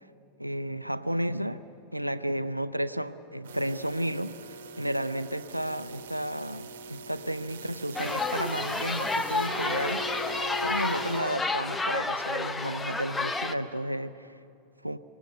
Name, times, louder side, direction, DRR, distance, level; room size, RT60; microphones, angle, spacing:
voice 1, 0.4-1.6 1.9-4.4 4.8-14.4 14.8-15.0, equal, 90° right, 14 dB, 0.5 m, -32 dB
sound 1, 3.4-11.2, right 4 dB, 55° right, 1.4 m, -41 dB
sound 2, 8.0-13.6, left 3 dB, 10° left, 0.9 m, -30 dB
24.5 x 19.5 x 7.9 m, 2.8 s
figure-of-eight pair, 90°, 0 cm